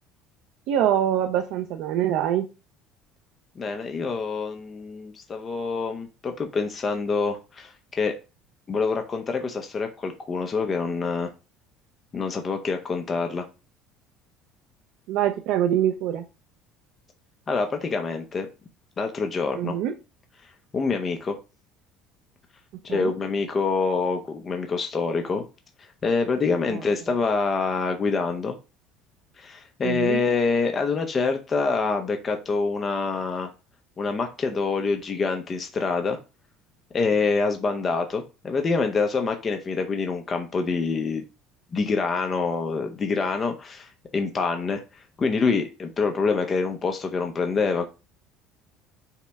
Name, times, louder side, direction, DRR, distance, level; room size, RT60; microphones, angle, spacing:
voice 1, 0.7-2.5 15.1-16.2 19.5-19.9 22.9-23.1 26.7-26.8 29.8-30.2, right 11 dB, 70° right, 0.5 m, -24 dB
voice 2, 3.6-8.2 8.7-11.3 12.1-13.5 17.5-18.5 19.0-19.8 20.7-21.4 22.8-25.4 25.8-28.6 29.4-33.5 34.0-36.2 36.9-41.2 41.7-47.9, left 4 dB, 25° left, 0.6 m, -26 dB
5.5 x 2.1 x 3.4 m
cardioid pair, 120°, 0 cm